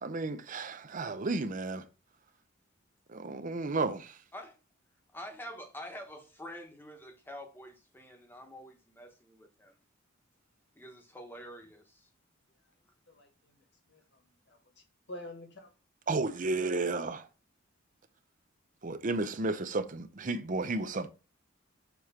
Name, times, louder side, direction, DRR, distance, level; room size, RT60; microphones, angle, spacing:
voice 1, 0.0-1.8 3.1-4.1 16.1-17.3 18.8-21.1, right 3 dB, 40° right, 0.6 m, -32 dB
voice 2, 5.1-9.8 10.7-12.1, equal, 10° left, 1.1 m, -47 dB
voice 3, 13.1-14.2 14.5-14.6 15.1-15.7, left 1 dB, 60° left, 1.6 m, -48 dB
6.9 x 3.1 x 5.5 m
head